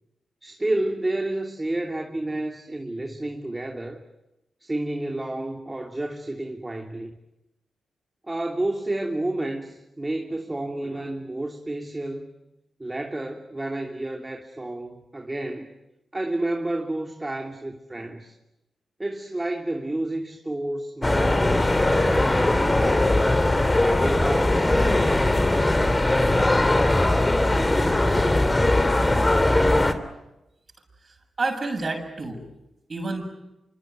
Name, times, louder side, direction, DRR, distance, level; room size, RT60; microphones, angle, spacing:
voice 1, 0.4-4.0 4.6-7.1 8.3-12.3 12.8-15.7 16.1-18.4 19.0-23.1 23.7-25.3, right 1 dB, 20° right, 3 dB, 3.0 m, -30 dB
sound 1, 21.0-29.9, left 1 dB, 25° left, 3.1 m, -20 dB
voice 2, 31.0-32.4 32.9-33.2, right 3 dB, 45° right, 5 dB, 7.2 m, -29 dB
25.5 x 24.5 x 9.4 m, 0.93 s
supercardioid pair, 50°, 0 cm